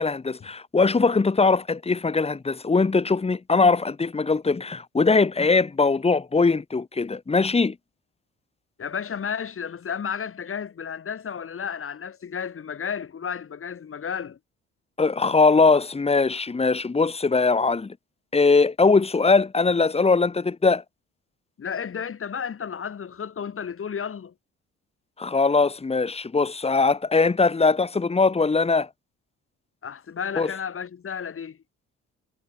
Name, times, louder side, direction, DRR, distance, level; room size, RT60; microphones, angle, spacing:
voice 1, 0.0-7.7 15.0-17.9 18.3-20.8 25.2-28.9 30.4-30.5, left 4 dB, 20° left, 1.2 m, -21 dB
voice 2, 8.8-14.4 21.6-24.3 29.8-31.6, left 7 dB, 45° left, 3.1 m, -32 dB
cardioid pair, 90°, 30 cm